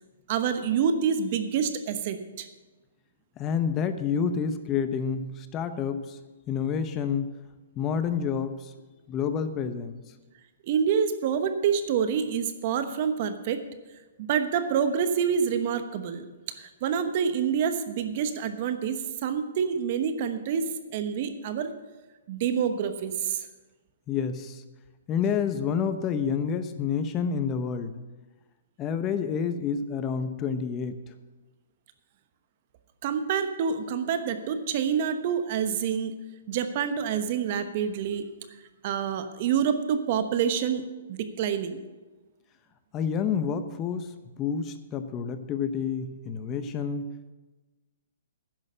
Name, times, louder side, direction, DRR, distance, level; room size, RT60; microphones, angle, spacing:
voice 1, 0.3-2.5 10.6-13.6 14.2-16.3 16.6-21.7 22.3-23.5 33.0-36.1 36.5-38.3 38.8-41.8, right 7 dB, 45° right, 9 dB, 1.1 m, -27 dB
voice 2, 3.4-6.2 6.5-7.3 7.8-8.7 9.1-10.0 24.1-24.6 25.1-27.9 28.8-31.1 42.9-47.1, left 6 dB, 25° left, 10 dB, 0.8 m, -29 dB
10.5 x 6.4 x 8.9 m, 1.2 s
hypercardioid pair, 140°, 0 cm